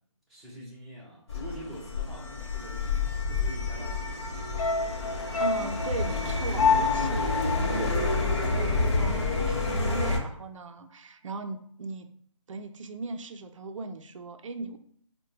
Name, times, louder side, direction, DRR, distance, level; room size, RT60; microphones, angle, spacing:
voice 1, 0.3-2.9 3.3-4.7, equal, ahead, -10 dB, 0.7 m, -45 dB
sound 1, 1.3-10.2, left 3 dB, 55° left, 1.0 m, -29 dB
sound 2, 4.6-9.0 9.3-9.4, left 5 dB, 80° left, 0.5 m, -29 dB
voice 2, 5.4-12.1 12.5-14.8, right 3 dB, 65° right, 7 dB, 0.5 m, -38 dB
4.6 x 2.2 x 3.1 m, 0.62 s
figure-of-eight pair, 155°, 17 cm